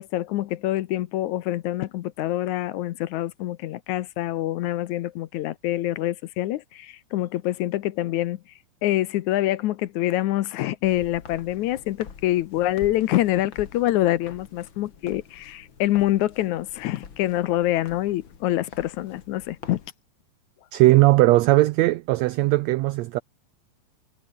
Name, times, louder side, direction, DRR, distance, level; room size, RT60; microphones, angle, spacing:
voice 1, 0.0-8.4 8.8-19.8, left 15 dB, 75° left, 2.1 m, -26 dB
Walk footsteps, 10.8-19.9, left 6 dB, 40° left, 2.6 m, -46 dB
voice 2, 20.7-23.2, right 18 dB, 85° right, 1.5 m, -18 dB
omnidirectional pair, 3.7 m